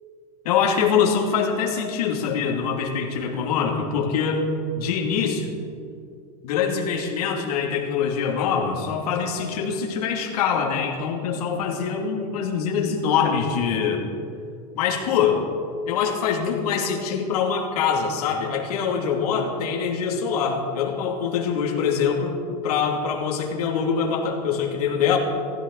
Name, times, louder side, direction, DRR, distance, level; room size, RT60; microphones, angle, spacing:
voice 1, 0.4-5.5 6.4-14.0 14.7-15.5 15.9-25.2, left 6 dB, 75° left, 0 dB, 2.9 m, -24 dB
18.5 x 15.5 x 4.2 m, 2.4 s
supercardioid pair, 170°, 20 cm